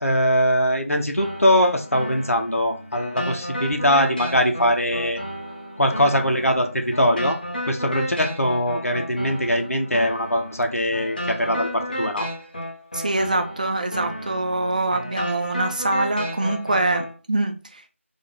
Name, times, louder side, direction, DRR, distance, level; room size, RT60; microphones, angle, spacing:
voice 1, 0.0-5.2 5.8-7.4 7.7-12.3, equal, 85° left, 0.7 m, -21 dB
sound 1, 1.2-17.2, equal, 40° left, 0.9 m, -33 dB
voice 2, 12.9-17.9, right 2 dB, 35° right, 0.4 m, -24 dB
3.5 x 2.1 x 3.5 m
figure-of-eight pair, 165°, 8 cm